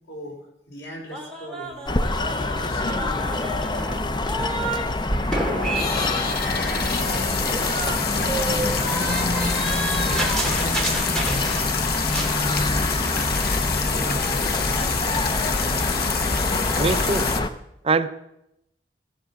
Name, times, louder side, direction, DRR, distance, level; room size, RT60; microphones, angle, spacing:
voice 1, 0.1-0.4 0.7-1.9 2.7-4.0 5.3-9.2 9.8-13.2 13.9-14.4 14.7-15.7, equal, 85° left, 1 dB, 4.2 m, -40 dB
sound 1, 1.1-4.8 5.1-11.8 12.0-12.4, right 1 dB, 5° left, 2.5 m, -30 dB
sound 2, 1.7-1.8 2.2-2.3 2.6-3.3 3.7-3.8 3.9-4.0 4.4-4.5 5.0-5.3 5.7-17.4, left 6 dB, 60° left, 1.1 m, -28 dB
sound 3, 1.9-17.5, left 2 dB, 25° left, 0.6 m, -26 dB
voice 2, 16.8-17.3 17.8-18.1, right 4 dB, 35° right, 11 dB, 0.6 m, -22 dB
15.5 x 7.9 x 7.0 m, 0.84 s
head